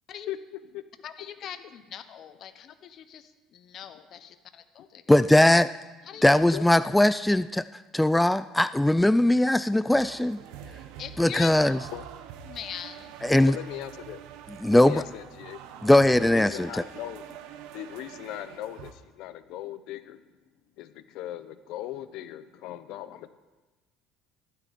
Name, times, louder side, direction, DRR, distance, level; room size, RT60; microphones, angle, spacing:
voice 1, 1.0-5.1 6.0-6.6 11.0-11.5 12.4-13.2, left 9 dB, 50° left, 10 dB, 1.1 m, -41 dB
voice 2, 5.1-5.7 6.2-7.6 7.9-10.4 11.2-11.8 13.2-13.5 14.6-15.0 15.8-16.7, left 1 dB, 5° left, 14 dB, 0.3 m, -20 dB
voice 3, 6.1-6.8 11.9-12.0 13.4-14.2 14.7-15.6 16.2-17.4 17.7-20.2 20.8-23.3, left 13 dB, 70° left, 12 dB, 0.8 m, -39 dB
sound 1, 9.9-18.9, right 9 dB, 80° right, 1.1 m, -45 dB
15.0 x 12.5 x 4.2 m, 1.2 s
supercardioid pair, 105°, 0 cm